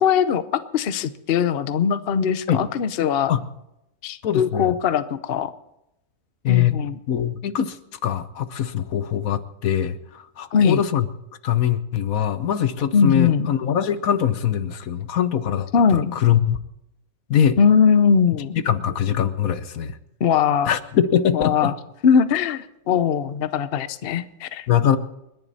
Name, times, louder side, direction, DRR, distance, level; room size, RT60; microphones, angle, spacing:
voice 1, 0.0-3.3 4.0-5.5 6.5-7.0 10.5-10.8 12.9-13.5 15.7-16.1 17.6-18.6 20.2-20.7 21.3-21.7 22.0-24.7, left 7 dB, 50° left, 13 dB, 0.8 m, -20 dB
voice 2, 4.2-4.7 6.4-6.8 7.1-7.8 8.0-11.1 11.4-16.6 17.3-17.6 18.6-20.0 20.6-21.7 24.7-25.0, left 9 dB, 70° left, 12 dB, 1.3 m, -22 dB
29.5 x 10.5 x 4.1 m, 0.86 s
omnidirectional pair, 1.6 m